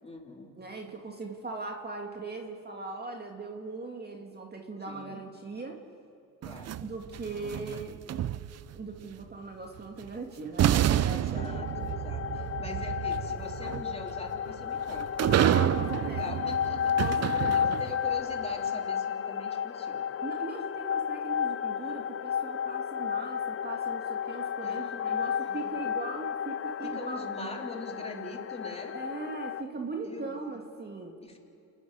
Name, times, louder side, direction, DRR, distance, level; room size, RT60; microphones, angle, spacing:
voice 1, 0.0-0.6 4.9-5.2 6.4-6.8 11.0-20.1 24.6-25.7 26.8-29.0 30.0-30.3 31.2-31.4, left 1 dB, 15° left, 1 dB, 3.4 m, -43 dB
voice 2, 0.6-5.8 6.8-8.0 8.7-11.4 15.3-16.4 17.0-17.8 20.2-27.2 28.9-31.1, right 3 dB, 25° right, 2 dB, 2.1 m, -39 dB
sound 1, 6.4-8.8 10.0-10.1 10.6-18.1, right 11 dB, 40° right, 0.6 m, -29 dB
sound 2, 11.3-29.6, left 8 dB, 35° left, 0.7 m, -32 dB
28.5 x 10.0 x 9.6 m, 2.7 s
supercardioid pair, 75°, 40 cm